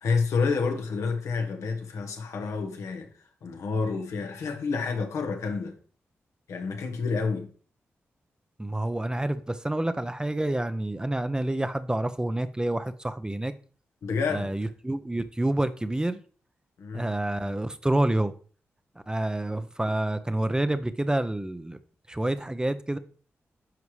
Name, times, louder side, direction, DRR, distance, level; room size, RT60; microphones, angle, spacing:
voice 1, 0.0-3.1 3.4-5.7 6.5-7.5 14.0-14.5 16.8-17.1, left 4 dB, 85° left, 1.3 m, -29 dB
voice 2, 8.6-13.5 14.3-16.2 16.9-18.3 19.1-21.8 22.1-23.0, right 1 dB, 15° right, 0.7 m, -28 dB
10.5 x 4.8 x 3.2 m
supercardioid pair, 45°, 5 cm